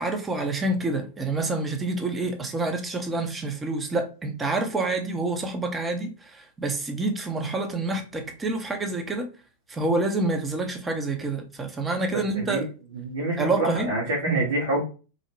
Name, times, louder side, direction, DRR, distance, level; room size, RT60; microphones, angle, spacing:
voice 1, 0.0-9.3 9.7-12.7 13.4-13.9 14.3-14.4, right 2 dB, 15° right, 0.5 m, -27 dB
voice 2, 12.1-12.7 12.9-14.8, right 2 dB, 60° right, 0.9 m, -27 dB
2.5 x 2.0 x 3.1 m
figure-of-eight pair, 90°, 0 cm